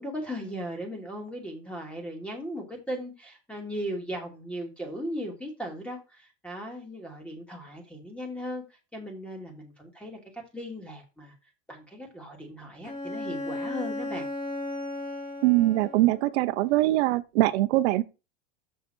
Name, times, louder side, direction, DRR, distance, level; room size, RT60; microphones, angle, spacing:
voice 1, 0.0-8.6 8.9-11.3 11.7-14.3, equal, 5° left, 2.6 m, -37 dB
Bowed string instrument, 12.8-16.3, left 2 dB, 25° left, 2.9 m, -35 dB
voice 2, 15.4-18.0, right 16 dB, 65° right, 0.9 m, -22 dB
7.0 x 6.4 x 4.5 m
supercardioid pair, 130°, 36 cm